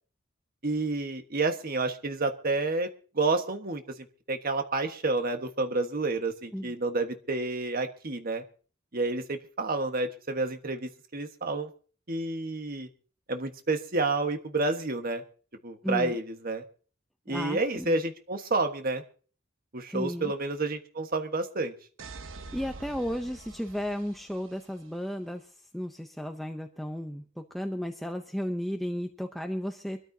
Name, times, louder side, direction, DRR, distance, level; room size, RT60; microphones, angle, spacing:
voice 1, 0.6-2.9 3.1-8.4 8.9-11.7 12.1-12.9 13.3-15.2 15.6-16.6 17.3-19.0 19.7-21.7, right 3 dB, 45° right, 6 dB, 1.4 m, -30 dB
voice 2, 15.8-16.2 17.3-18.0 19.9-20.3 22.5-30.0, equal, ahead, 4 dB, 0.7 m, -34 dB
sound 1, 22.0-24.9, right 3 dB, 75° right, 1.2 m, -46 dB
25.0 x 13.5 x 2.8 m, 0.41 s
head